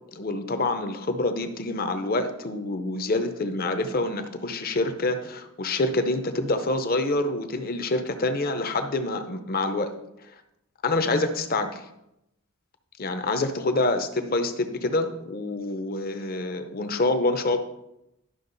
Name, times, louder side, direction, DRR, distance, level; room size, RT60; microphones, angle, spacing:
voice 1, 0.1-9.9 10.8-11.8 13.0-17.6, left 2 dB, 40° left, 8 dB, 0.8 m, -26 dB
11.5 x 6.1 x 4.0 m, 0.85 s
head